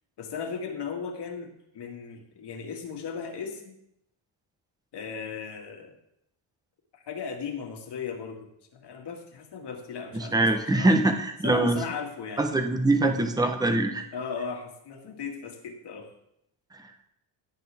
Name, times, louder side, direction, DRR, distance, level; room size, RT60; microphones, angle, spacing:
voice 1, 0.2-3.8 4.9-6.0 6.9-10.9 11.4-12.5 14.1-16.1, left 6 dB, 60° left, 3 dB, 2.1 m, -37 dB
voice 2, 10.1-11.8 12.4-14.0, right 2 dB, 10° right, 6 dB, 1.0 m, -23 dB
16.5 x 8.4 x 3.6 m, 0.79 s
cardioid pair, 140°, 46 cm